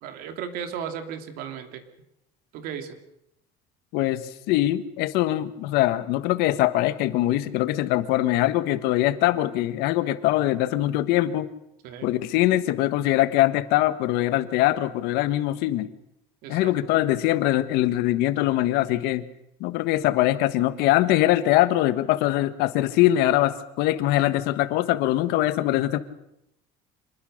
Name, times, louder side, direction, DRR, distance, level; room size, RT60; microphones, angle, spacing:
voice 1, 0.0-1.8 2.5-3.0 11.8-12.1 16.4-16.7, right 8 dB, 60° right, 7 dB, 3.1 m, -35 dB
voice 2, 3.9-11.5 12.0-15.9 16.5-19.2 19.6-26.0, left 15 dB, 70° left, 13 dB, 1.5 m, -22 dB
26.5 x 20.5 x 6.6 m, 0.80 s
cardioid pair, 170°, 17 cm